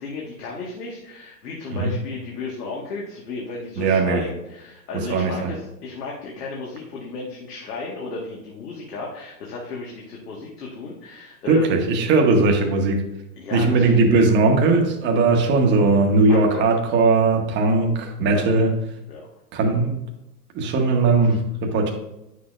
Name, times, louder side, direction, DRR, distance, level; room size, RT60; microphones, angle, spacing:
voice 1, 0.0-11.8 13.4-13.9 16.3-16.7 18.3-18.4 19.1-19.3, left 3 dB, 70° left, -3 dB, 1.9 m, -34 dB
voice 2, 3.8-4.2 4.9-5.5 11.5-13.0 13.5-18.7 19.5-20.0 20.5-21.9, right 3 dB, 20° right, 2 dB, 1.2 m, -19 dB
9.3 x 6.6 x 2.6 m, 0.90 s
hypercardioid pair, 140°, 50 cm